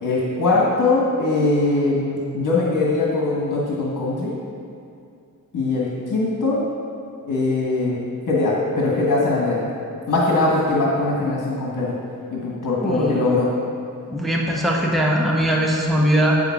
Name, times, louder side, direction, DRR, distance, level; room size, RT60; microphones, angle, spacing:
voice 1, 0.0-4.3 5.5-6.6 7.3-9.6 10.1-12.0 12.3-13.5, left 2 dB, 70° left, -4 dB, 1.7 m, -21 dB
voice 2, 12.8-13.2 14.1-16.3, equal, ahead, -2 dB, 0.8 m, -20 dB
8.9 x 7.0 x 5.9 m, 2.4 s
wide cardioid pair, 155°, 33 cm